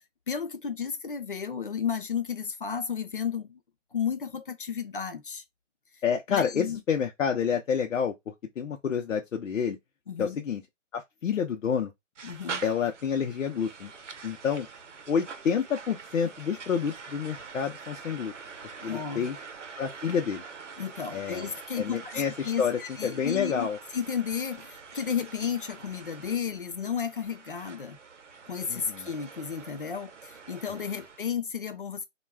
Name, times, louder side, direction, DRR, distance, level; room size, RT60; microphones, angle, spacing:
voice 1, 0.3-3.6 3.9-5.4 6.3-6.8 10.1-10.4 12.2-12.6 18.8-19.3 20.8-23.7 23.9-28.0 28.5-32.1, left 7 dB, 45° left, 0.4 m, -33 dB
voice 2, 6.0-9.8 10.2-10.6 10.9-11.9 12.6-13.9 14.2-14.7 15.1-18.3 18.8-19.4 19.8-20.4 21.1-21.5 21.8-23.8 28.7-29.1, left 7 dB, 90° left, 0.7 m, -29 dB
sound 1, 12.2-31.3, right 5 dB, 70° right, 0.7 m, -45 dB
2.3 x 2.3 x 3.3 m
hypercardioid pair, 175°, 38 cm